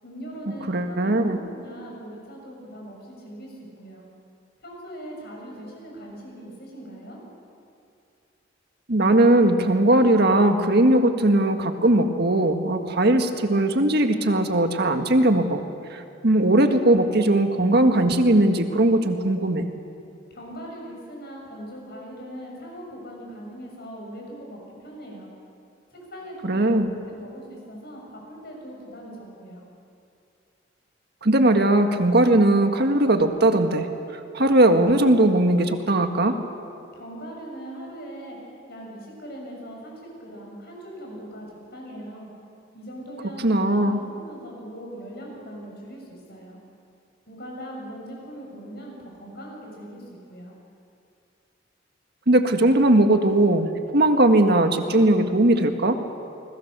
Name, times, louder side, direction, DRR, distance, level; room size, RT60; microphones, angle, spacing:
voice 1, 0.0-4.0 4.6-7.2 20.3-25.3 25.9-26.8 27.1-29.6 36.9-38.4 38.7-42.3 42.7-46.6 47.3-50.5, equal, 55° left, -1 dB, 7.5 m, -40 dB
voice 2, 0.7-1.4 8.9-15.6 15.9-19.7 26.4-26.9 31.2-33.9 34.3-36.4 43.4-44.0 52.3-56.0, right 1 dB, 55° right, 6 dB, 1.7 m, -19 dB
29.0 x 21.0 x 6.8 m, 2.5 s
head